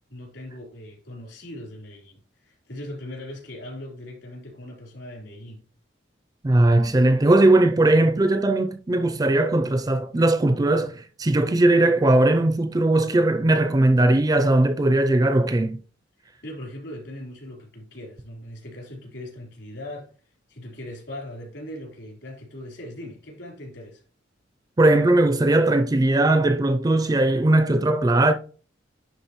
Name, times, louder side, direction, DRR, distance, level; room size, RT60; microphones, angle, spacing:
voice 1, 0.1-5.6 16.4-24.0, left 1 dB, 65° left, 3.7 m, -39 dB
voice 2, 6.4-15.8 24.8-28.3, right 2 dB, 20° right, 0.4 m, -19 dB
11.0 x 3.8 x 3.0 m
head